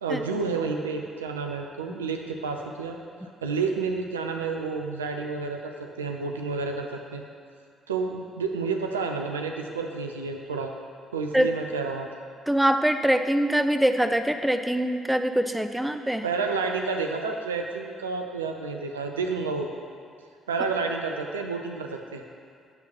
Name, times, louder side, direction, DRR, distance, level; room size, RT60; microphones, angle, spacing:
voice 1, 0.0-3.0 3.4-7.2 7.9-10.7 11.1-12.1 16.2-19.9 20.5-22.2, right 4 dB, 85° right, 3 dB, 0.6 m, -30 dB
voice 2, 12.5-16.2, right 1 dB, 5° right, 7 dB, 0.6 m, -23 dB
12.0 x 4.0 x 5.8 m, 2.5 s
figure-of-eight pair, 45°, 0 cm